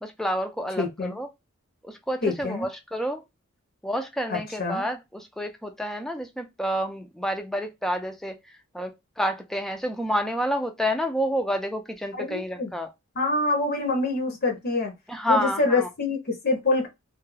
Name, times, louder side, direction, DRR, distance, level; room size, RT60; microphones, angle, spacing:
voice 1, 0.0-1.3 1.8-3.2 3.8-8.4 8.7-12.9 15.1-15.9, equal, ahead, 0.3 m, -29 dB
voice 2, 0.8-1.2 2.2-2.7 4.3-4.8 12.1-12.7 13.2-14.9 15.3-16.9, left 3 dB, 50° left, 0.6 m, -26 dB
2.3 x 2.1 x 3.1 m
head